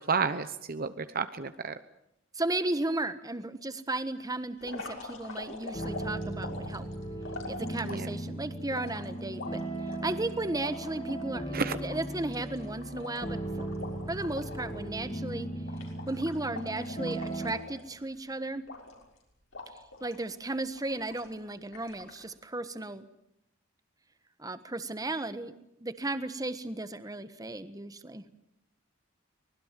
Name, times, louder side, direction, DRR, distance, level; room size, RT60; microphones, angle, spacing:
voice 1, 0.1-1.7 7.9-8.1 11.5-11.8, right 5 dB, 45° right, 11 dB, 0.9 m, -31 dB
voice 2, 2.3-6.9 7.5-13.7 14.1-15.5 16.1-18.6 20.0-23.0 24.4-25.5 25.8-28.2, right 2 dB, 20° right, 11 dB, 1.3 m, -35 dB
sound 1, 4.6-8.2 8.7-11.2 11.6-11.7 11.9-14.8 15.1-15.3 15.7-18.2 18.7-19.2 19.5-20.2 20.7-21.3 21.7-22.2, left 3 dB, 70° left, 6.1 m, -44 dB
sound 2, 5.7-17.5, right 1 dB, 30° left, 3.6 m, -37 dB
24.5 x 20.0 x 7.6 m, 0.79 s
head